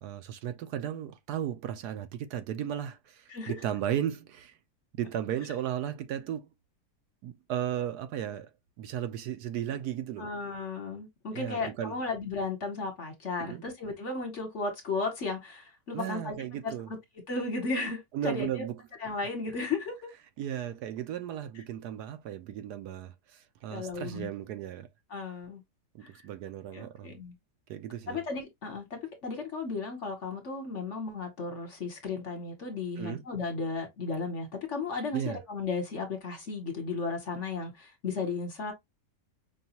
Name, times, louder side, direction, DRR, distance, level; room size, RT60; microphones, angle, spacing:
voice 1, 0.0-4.5 4.9-6.5 7.2-10.3 11.3-12.0 13.4-13.6 15.9-16.9 18.1-18.7 20.4-24.9 25.9-27.2 27.7-28.2 33.0-33.2 35.1-35.4, right 10 dB, 75° right, 1.1 m, -35 dB
voice 2, 10.2-17.0 17.3-18.6 19.0-20.1 23.7-24.3 25.1-25.6 26.0-26.1 26.7-27.3 28.1-38.7, left 4 dB, 50° left, 1.3 m, -35 dB
5.4 x 2.3 x 2.8 m
omnidirectional pair, 1.8 m